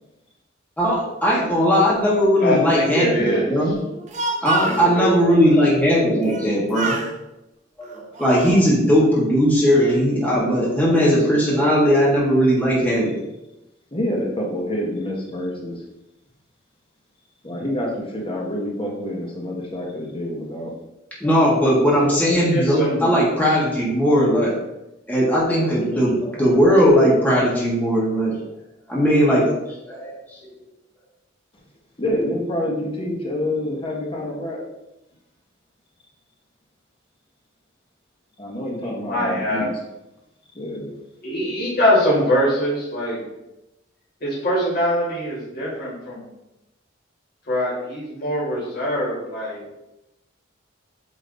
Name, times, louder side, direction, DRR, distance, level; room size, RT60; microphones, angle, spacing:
voice 1, 0.8-3.8 4.4-7.0 7.8-13.2 21.2-24.6 25.1-28.3 28.9-30.6, equal, 10° left, -6 dB, 1.5 m, -18 dB
voice 2, 2.4-3.7 4.6-5.6 22.3-23.1 38.8-39.7 41.2-43.2 44.2-46.3 47.5-49.6, equal, 55° left, -6 dB, 2.1 m, -23 dB
Speech, 3.9-4.9 6.2-6.5 6.7-7.1 7.8-8.7, right 2 dB, 40° right, 0.7 m, -27 dB
voice 3, 13.9-15.8 17.4-20.7 32.0-34.6 38.4-39.7 40.5-40.9, left 1 dB, 30° left, -1 dB, 1.3 m, -27 dB
8.2 x 3.1 x 4.0 m, 0.92 s
head